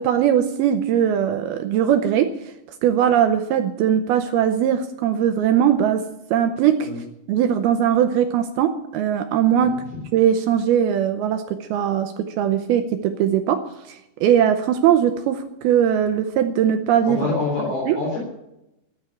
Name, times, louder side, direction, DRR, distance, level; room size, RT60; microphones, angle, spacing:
voice 1, 0.0-2.3 2.8-6.9 7.3-9.8 10.1-17.2 17.9-18.0, right 9 dB, 85° right, 7 dB, 2.2 m, -20 dB
voice 2, 17.1-18.2, left 3 dB, 55° left, -3 dB, 5.5 m, -26 dB
14.0 x 9.8 x 9.0 m, 0.87 s
omnidirectional pair, 5.5 m